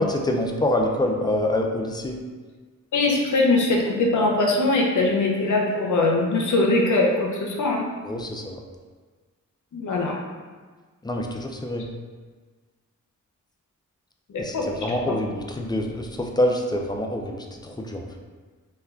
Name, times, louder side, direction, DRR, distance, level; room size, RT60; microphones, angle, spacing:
voice 1, 0.0-2.2 8.0-8.6 11.0-11.9 14.4-18.1, left 1 dB, 15° left, 2 dB, 0.3 m, -26 dB
voice 2, 2.9-7.9 9.7-10.2 14.3-14.8, left 2 dB, 65° left, 0 dB, 0.6 m, -21 dB
2.3 x 2.1 x 3.5 m, 1.4 s
cardioid pair, 50°, 32 cm